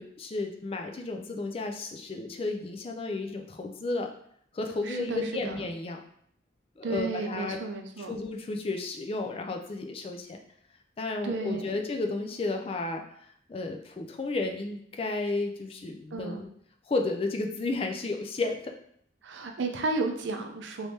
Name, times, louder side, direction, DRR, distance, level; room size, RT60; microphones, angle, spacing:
voice 1, 0.0-4.1 4.5-6.0 6.8-7.6 8.0-10.4 11.0-13.0 13.5-16.5 16.9-18.7, left 3 dB, 30° left, 3 dB, 0.3 m, -32 dB
voice 2, 4.8-5.7 6.8-8.2 11.2-11.7 16.1-16.4 19.2-20.9, right 3 dB, 75° right, 4 dB, 0.5 m, -33 dB
3.3 x 3.1 x 2.7 m, 0.67 s
head